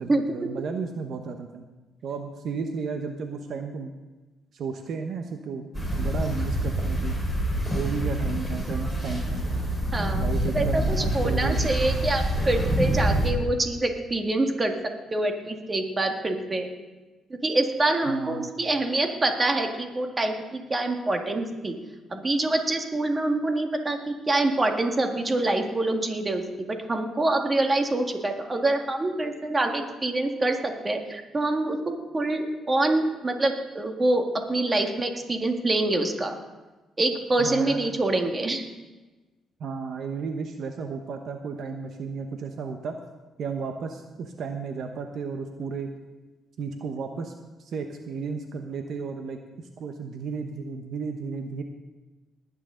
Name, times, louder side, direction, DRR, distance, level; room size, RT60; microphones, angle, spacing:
voice 1, 0.0-1.6 2.0-3.9 4.5-5.7 5.9-7.1 7.7-9.4 10.1-11.7 18.1-18.5 37.4-37.9 39.6-43.0 43.4-45.9 46.6-47.3 47.6-51.6, right 5 dB, 65° right, 5 dB, 1.0 m, -33 dB
sound 1, 5.7-13.3, right 1 dB, 5° right, 4.5 m, -26 dB
voice 2, 9.9-10.2 10.5-14.7 15.1-16.7 17.3-21.7 22.1-26.4 26.7-36.4 37.0-38.6, right 2 dB, 25° right, 4 dB, 1.8 m, -25 dB
20.0 x 9.3 x 3.8 m, 1.2 s
cardioid pair, 90°, 0 cm